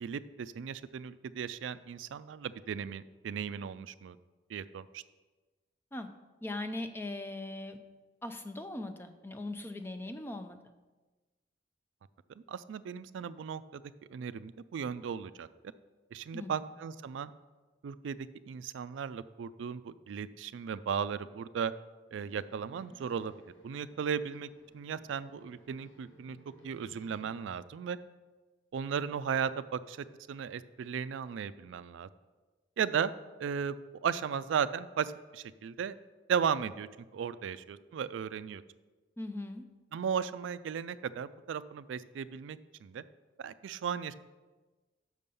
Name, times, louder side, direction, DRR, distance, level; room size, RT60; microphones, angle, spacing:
voice 1, 0.0-4.2 4.5-5.0 12.5-13.8 14.1-15.5 16.1-17.3 17.8-21.7 22.1-23.3 23.6-26.4 26.6-28.0 28.7-32.1 32.8-33.1 33.4-33.8 34.0-35.9 36.3-36.9 37.1-38.6 39.9-43.0 43.4-44.1, right 7 dB, 80° right, 15 dB, 0.3 m, -36 dB
voice 2, 6.4-7.8 8.2-10.6 16.3-16.7 39.2-39.7, left 2 dB, 10° left, 8 dB, 0.4 m, -40 dB
sound 1, 22.1-27.5, equal, 85° left, 1.5 m, -60 dB
6.4 x 5.4 x 6.8 m, 1.2 s
head